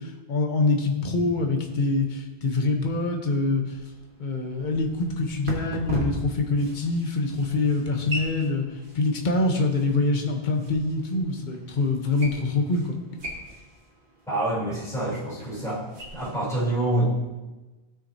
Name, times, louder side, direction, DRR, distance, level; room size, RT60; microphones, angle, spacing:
voice 1, 0.0-3.6 4.2-8.6 8.9-13.0, left 3 dB, 50° left, 2 dB, 1.2 m, -25 dB
sound 1, 3.7-16.3, right 1 dB, 55° right, 1.7 m, -40 dB
voice 2, 14.3-15.8 16.1-17.0, right 1 dB, 5° left, -9 dB, 3.4 m, -26 dB
16.0 x 6.3 x 2.8 m, 1.2 s
omnidirectional pair, 1.0 m